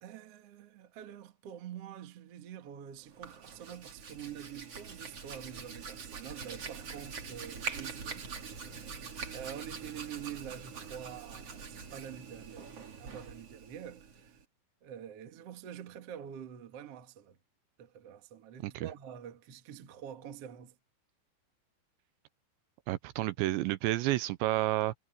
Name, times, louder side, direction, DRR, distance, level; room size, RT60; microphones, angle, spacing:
voice 1, 0.0-8.9 9.3-14.4 14.8-17.4 17.8-20.7, right 9 dB, 60° right, 1.6 m, -46 dB
Hands, 3.0-14.4, right 5 dB, 35° right, 3.2 m, -44 dB
voice 2, 22.9-24.9, right 16 dB, 85° right, 2.9 m, -30 dB
omnidirectional pair, 5.4 m